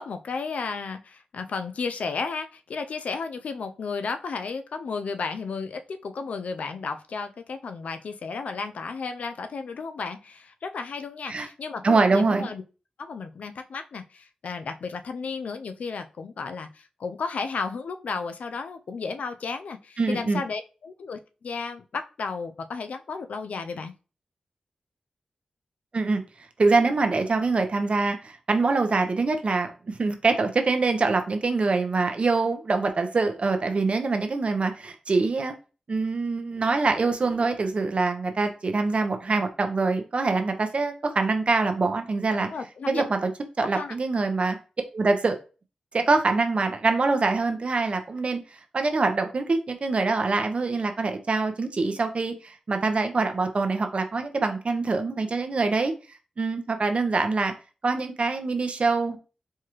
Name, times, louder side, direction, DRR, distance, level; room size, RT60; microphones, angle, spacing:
voice 1, 0.0-12.6 13.0-23.9 42.4-43.0 43.6-43.9, left 4 dB, 80° left, 8 dB, 0.4 m, -33 dB
voice 2, 11.8-12.5 20.0-20.4 25.9-26.2 26.6-35.5 35.9-42.5 42.9-43.3 43.6-44.6 44.9-45.3 45.9-48.4 48.7-55.9 56.4-57.5 57.8-59.2, right 3 dB, 55° right, 6 dB, 0.7 m, -24 dB
4.6 x 2.3 x 3.0 m, 0.33 s
cardioid pair, 45°, 2 cm